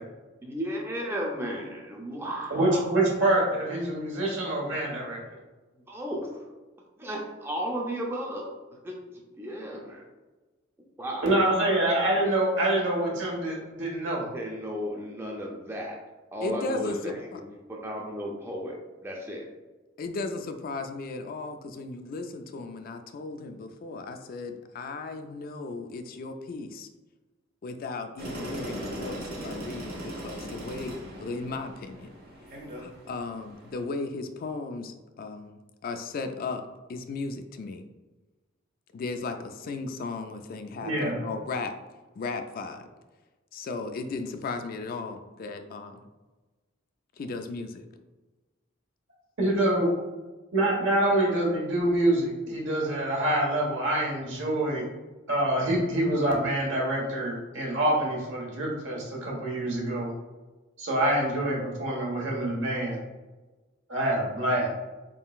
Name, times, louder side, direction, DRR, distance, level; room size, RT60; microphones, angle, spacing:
voice 1, 0.4-2.9 5.7-6.4 7.0-10.1 11.0-11.3 14.3-16.0 16.3-19.5, equal, 10° right, -1 dB, 0.5 m, -34 dB
voice 2, 2.5-5.2 11.2-14.2 40.8-41.2 49.4-49.9 50.5-54.8 55.3-60.1 60.8-63.0 63.9-64.7, right 1 dB, 65° right, -2 dB, 1.2 m, -26 dB
voice 3, 16.4-17.4 20.0-26.9 27.6-32.1 32.7-36.6 36.9-37.8 38.9-41.7 42.2-42.9 43.5-46.0 47.2-47.9, left 3 dB, 45° left, 7 dB, 0.3 m, -36 dB
sound 1, 28.2-33.8, right 1 dB, 50° right, 0.8 m, -39 dB
4.2 x 3.7 x 2.3 m, 1.2 s
head